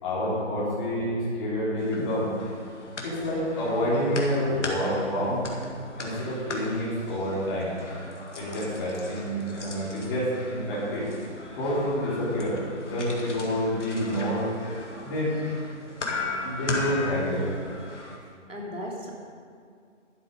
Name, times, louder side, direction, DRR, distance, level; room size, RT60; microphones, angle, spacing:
voice 1, 0.0-2.3 3.0-5.5 6.0-7.7 8.4-11.1 11.5-14.5 15.0-15.4 16.4-17.5, equal, 20° left, -8 dB, 3.1 m, -28 dB
sound 1, 1.8-18.2, left 2 dB, 70° left, 2.1 m, -37 dB
voice 2, 18.2-19.1, equal, 85° right, -2 dB, 3.1 m, -37 dB
11.5 x 8.4 x 5.3 m, 2.2 s
hypercardioid pair, 160°, 37 cm